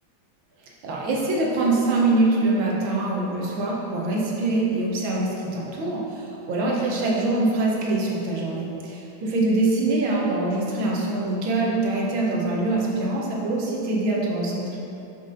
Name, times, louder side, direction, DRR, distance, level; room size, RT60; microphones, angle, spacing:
voice 1, 0.8-14.7, right 2 dB, 80° right, -3 dB, 1.8 m, -24 dB
6.9 x 5.7 x 3.8 m, 2.8 s
omnidirectional pair, 2.2 m